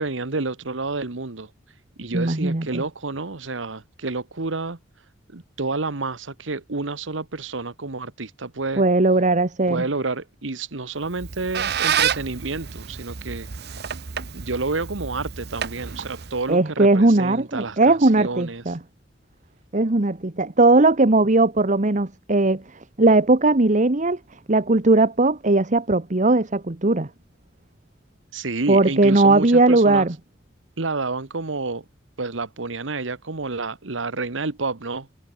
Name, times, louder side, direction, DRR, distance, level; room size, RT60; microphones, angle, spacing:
voice 1, 0.0-1.5 2.0-4.8 5.3-8.8 9.7-13.8 14.3-18.6 28.3-30.1 30.8-31.8 32.2-35.1, right 3 dB, 80° right, 1.4 m, -29 dB
voice 2, 2.1-2.8 8.8-9.8 16.5-18.8 19.7-24.2 24.5-27.1 28.7-30.1, right 2 dB, 40° right, 1.2 m, -18 dB
Squeak, 11.0-16.5, right 8 dB, 60° right, 1.0 m, -29 dB
head